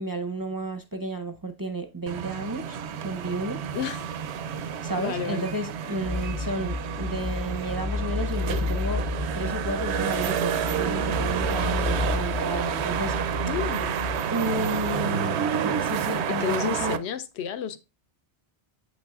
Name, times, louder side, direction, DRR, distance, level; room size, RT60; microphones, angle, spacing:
voice 1, 0.0-2.8 3.0-3.6 4.8-13.5 14.3-17.0, right 1 dB, 25° right, 0.5 m, -32 dB
sound 1, 2.1-17.0, right 8 dB, 75° right, 0.8 m, -29 dB
voice 2, 3.7-4.1 5.0-5.6 13.5-14.0 16.3-17.8, left 8 dB, 75° left, 0.9 m, -31 dB
sound 2, 6.0-14.2, left 4 dB, 50° left, 1.2 m, -32 dB
8.2 x 5.9 x 2.3 m
omnidirectional pair, 1.1 m